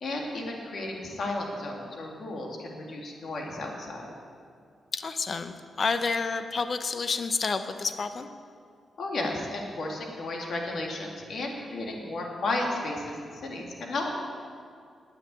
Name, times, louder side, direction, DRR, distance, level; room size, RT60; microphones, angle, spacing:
voice 1, 0.0-4.0 9.0-14.1, left 2 dB, 70° left, 0 dB, 2.4 m, -33 dB
voice 2, 4.9-8.3, left 4 dB, 50° left, 9 dB, 0.8 m, -29 dB
9.9 x 9.8 x 8.2 m, 2.3 s
cardioid pair, 65°, 0 cm